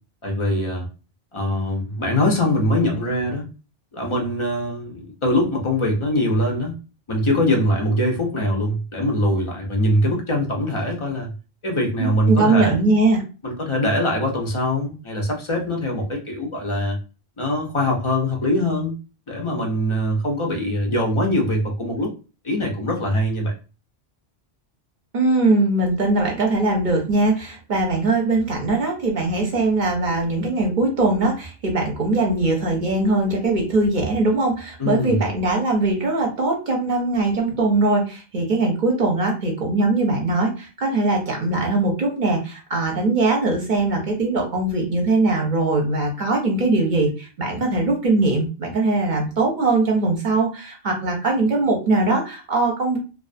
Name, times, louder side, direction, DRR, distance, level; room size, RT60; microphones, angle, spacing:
voice 1, 0.2-0.9 1.3-3.5 3.9-6.7 7.1-11.3 11.6-12.8 13.4-17.0 17.4-18.9 19.3-22.1 22.4-23.5 34.8-35.2, left 1 dB, 50° left, 1 dB, 0.3 m, -22 dB
voice 2, 12.0-13.2 25.1-53.0, right 2 dB, 55° right, 1 dB, 0.6 m, -21 dB
2.3 x 2.3 x 2.4 m, 0.33 s
omnidirectional pair, 1.1 m